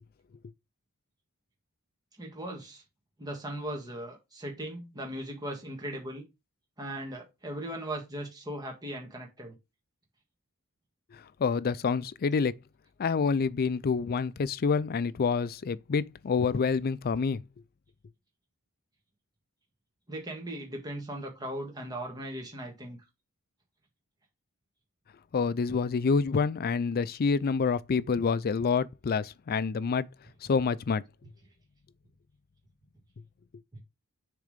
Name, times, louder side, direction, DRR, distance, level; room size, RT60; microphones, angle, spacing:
voice 1, 2.2-2.8 3.2-6.2 6.8-9.6 20.1-23.0, right 1 dB, 20° right, 1.8 m, -38 dB
voice 2, 11.1-12.6 13.0-17.4 25.3-30.1 30.5-31.0, left 5 dB, 45° left, 0.4 m, -27 dB
6.9 x 3.7 x 5.0 m
head